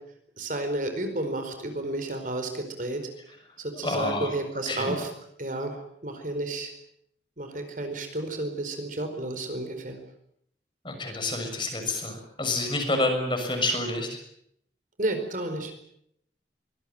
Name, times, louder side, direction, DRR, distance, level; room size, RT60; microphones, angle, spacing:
voice 1, 0.4-3.1 3.6-5.1 5.4-5.8 6.0-6.7 7.4-10.0 15.0-15.7, right 2 dB, 45° right, 6 dB, 4.6 m, -31 dB
voice 2, 3.8-4.3 4.7-5.0 10.8-14.2, left 2 dB, 25° left, 4 dB, 6.7 m, -28 dB
24.0 x 20.0 x 9.0 m, 0.72 s
head